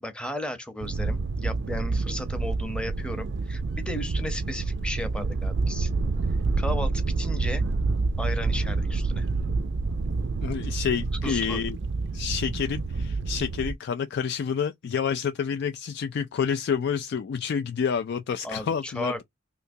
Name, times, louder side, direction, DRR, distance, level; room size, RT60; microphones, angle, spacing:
voice 1, 0.0-5.9 6.6-7.6 8.2-9.3 11.2-11.6 18.4-19.2, left 1 dB, 5° left, 0.7 m, -35 dB
sound 1, 0.8-13.7, right 3 dB, 60° right, 0.4 m, -28 dB
voice 2, 10.4-11.8 12.1-19.1, left 7 dB, 55° left, 0.3 m, -28 dB
3.3 x 2.8 x 2.6 m
head